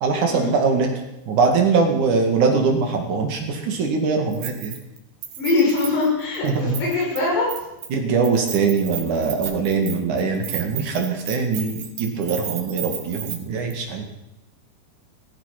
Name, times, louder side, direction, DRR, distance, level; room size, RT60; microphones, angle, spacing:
voice 1, 0.0-0.9 1.3-4.8 6.4-6.8 7.9-14.0, right 4 dB, 50° right, 3 dB, 3.0 m, -22 dB
Keys jangling, 4.3-5.0 5.2-7.2 7.5-7.9 8.2-13.4 13.7-13.8, right 10 dB, 80° right, 4.0 m, -33 dB
voice 2, 5.4-7.5, left 3 dB, 65° left, -3 dB, 8.6 m, -22 dB
16.0 x 15.0 x 6.0 m, 0.91 s
omnidirectional pair, 5.2 m